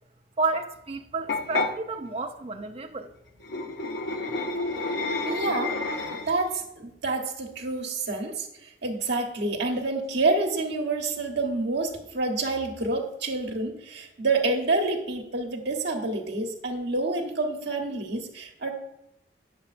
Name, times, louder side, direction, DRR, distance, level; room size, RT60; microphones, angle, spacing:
voice 1, 0.4-3.1, right 3 dB, 35° right, 0.5 m, -31 dB
sound 1, 1.3-1.7 3.4-6.5, left 3 dB, 70° left, 0.8 m, -29 dB
voice 2, 5.2-5.8 6.1-8.5 8.8-18.7, right 3 dB, 65° right, 1.2 m, -28 dB
8.6 x 7.0 x 2.5 m
head